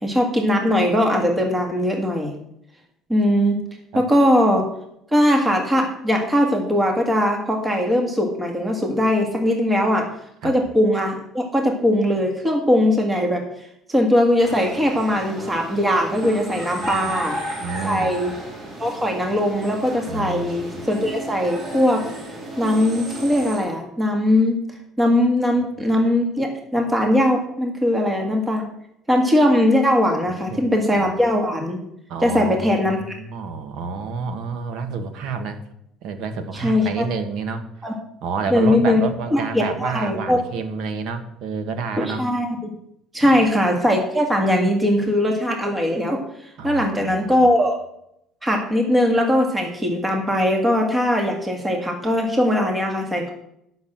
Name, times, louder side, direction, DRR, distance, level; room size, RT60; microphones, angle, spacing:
voice 1, 0.0-2.3 3.1-3.6 3.9-4.7 5.1-10.1 10.4-13.4 13.9-17.4 17.8-18.3 18.8-22.0 22.6-24.6 25.0-28.6 29.1-31.8 32.2-33.0 36.5-37.1 37.8-37.9 38.5-39.0 39.3-40.4 42.0-42.7 43.1-47.7 48.4-53.3, left 1 dB, 10° right, 2 dB, 1.8 m, -20 dB
sound 1, 14.4-23.6, right 1 dB, 30° right, 3.2 m, -33 dB
voice 2, 17.6-18.1 20.1-20.7 30.3-30.6 31.0-31.1 32.1-35.6 36.0-37.7 38.2-42.2 43.2-43.4 44.4-44.5 46.6-47.5, right 5 dB, 70° right, 8 dB, 1.5 m, -29 dB
10.0 x 6.4 x 7.5 m, 0.77 s
cardioid pair, 130°, 0 cm